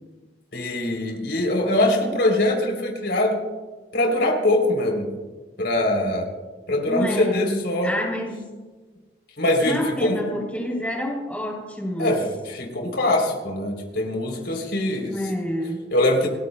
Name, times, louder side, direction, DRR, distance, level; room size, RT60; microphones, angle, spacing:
voice 1, 0.5-3.4 3.9-5.1 5.6-6.3 6.7-7.9 9.4-10.2 12.0-15.1 15.9-16.3, left 1 dB, 75° left, 2 dB, 3.3 m, -22 dB
voice 2, 6.8-8.5 9.6-12.1 15.1-15.8, equal, 10° left, -2 dB, 3.0 m, -28 dB
29.5 x 14.5 x 2.2 m, 1.3 s
head